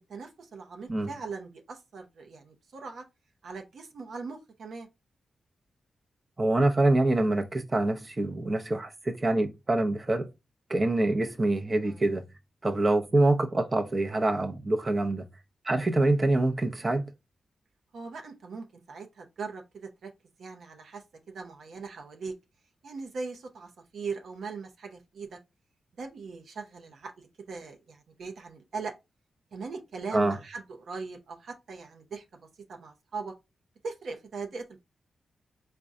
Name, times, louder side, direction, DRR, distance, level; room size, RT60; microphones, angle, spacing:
voice 1, 0.1-3.0 3.4-4.9 11.8-12.0 17.9-20.1 20.4-22.4 22.8-25.4 25.9-28.9 29.5-32.2 32.7-33.3 33.8-34.8, right 4 dB, 75° right, 0.7 m, -40 dB
voice 2, 6.4-10.3 10.7-12.2 12.6-15.3 15.6-17.1 30.1-30.4, right 2 dB, 35° right, 0.7 m, -25 dB
4.0 x 2.2 x 3.6 m
cardioid pair, 50°, 0 cm